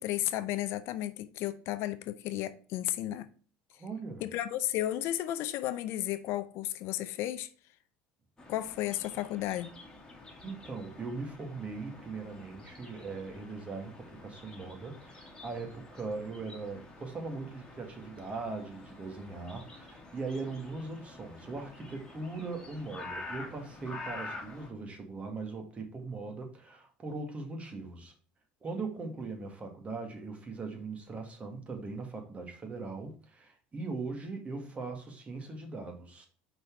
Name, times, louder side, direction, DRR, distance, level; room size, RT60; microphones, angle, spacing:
voice 1, 0.0-3.3 4.2-7.5 8.5-9.7, left 14 dB, 65° left, 0.5 m, -33 dB
voice 2, 3.8-4.2 10.4-28.1 28.6-36.3, right 3 dB, 30° right, 1.7 m, -40 dB
sound 1, 8.4-24.7, left 2 dB, 15° left, 1.9 m, -48 dB
5.2 x 4.1 x 4.5 m
supercardioid pair, 105°, 4 cm